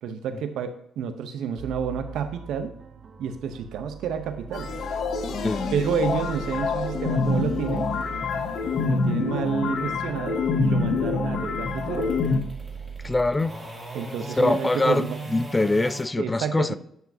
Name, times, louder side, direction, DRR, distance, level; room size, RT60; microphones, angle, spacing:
voice 1, 0.0-2.8 3.2-4.7 5.7-7.9 8.8-12.1 13.9-15.2 16.2-16.8, right 7 dB, 80° right, 0.8 m, -29 dB
sound 1, 1.6-13.3, right 6 dB, 50° right, 0.7 m, -40 dB
sound 2, 4.1-16.0, right 2 dB, 10° right, 2.2 m, -41 dB
sound 3, 4.5-12.4, left 4 dB, 65° left, 0.8 m, -26 dB
voice 2, 13.0-13.6 14.4-16.8, left 2 dB, 20° left, 0.3 m, -23 dB
9.3 x 5.8 x 2.8 m
cardioid pair, 90°, 0 cm